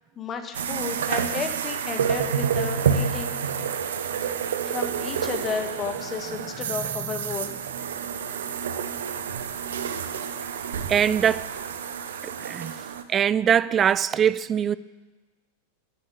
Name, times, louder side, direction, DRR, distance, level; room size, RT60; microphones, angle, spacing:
voice 1, 0.2-3.3 4.6-7.6, left 5 dB, 25° left, 1.6 m, -33 dB
sound 1, 0.5-13.0, right 7 dB, 65° right, 1.0 m, -29 dB
voice 2, 6.8-7.1 10.9-11.5 12.2-12.7 13.1-14.7, right 8 dB, 25° right, 0.4 m, -22 dB
13.0 x 7.3 x 9.9 m
figure-of-eight pair, 90°, 0 cm